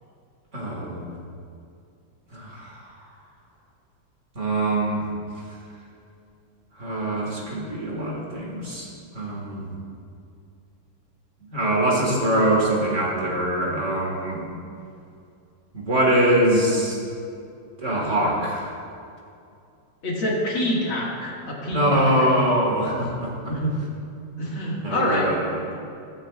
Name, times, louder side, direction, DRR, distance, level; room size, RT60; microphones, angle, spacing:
voice 1, 0.5-1.1 2.3-2.7 4.4-5.0 6.8-8.9 9.1-9.7 11.5-14.4 15.7-17.0 17.8-18.6 21.7-23.3 24.8-25.3, right 1 dB, 40° right, -3 dB, 2.1 m, -23 dB
voice 2, 20.0-21.8 22.2-22.3 22.9-23.1 23.5-23.7 24.4-25.3, left 1 dB, 75° left, -4 dB, 2.9 m, -26 dB
14.5 x 14.0 x 2.5 m, 2.5 s
omnidirectional pair, 2.2 m